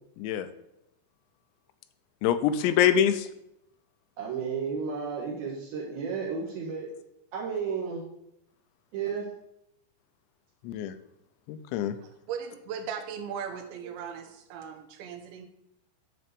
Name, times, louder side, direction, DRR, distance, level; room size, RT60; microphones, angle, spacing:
voice 1, 2.2-3.3 10.6-10.9 11.5-12.0, left 9 dB, 85° left, 11 dB, 2.9 m, -24 dB
voice 2, 4.2-6.9 7.3-8.0 8.9-9.2, right 6 dB, 65° right, -5 dB, 3.1 m, -32 dB
voice 3, 12.0-15.5, right 7 dB, 90° right, 4 dB, 3.2 m, -38 dB
10.0 x 4.3 x 6.7 m, 0.82 s
omnidirectional pair, 5.1 m